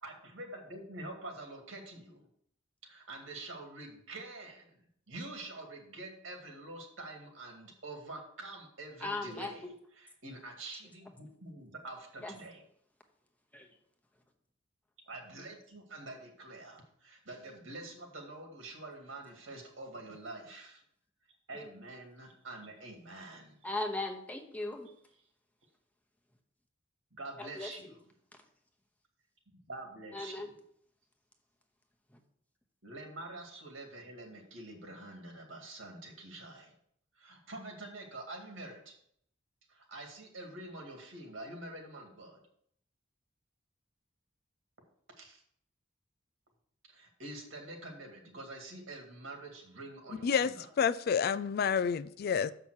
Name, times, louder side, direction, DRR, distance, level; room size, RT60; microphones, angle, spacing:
voice 1, 0.0-2.2 2.8-4.8 5.1-9.7 10.0-12.6 15.1-20.8 21.5-23.6 27.1-28.0 29.7-30.5 32.8-36.7 37.2-38.9 39.7-42.4 45.2-45.4 46.9-50.7, right 2 dB, 80° right, 2.2 m, -46 dB
voice 2, 9.0-9.5 12.2-12.3 13.5-13.7 21.5-21.7 23.6-24.9 27.4-27.7 30.1-30.5 32.1-32.2, left 2 dB, 10° left, 0.9 m, -38 dB
voice 3, 50.8-52.5, left 7 dB, 50° left, 0.3 m, -29 dB
7.1 x 5.8 x 6.3 m
head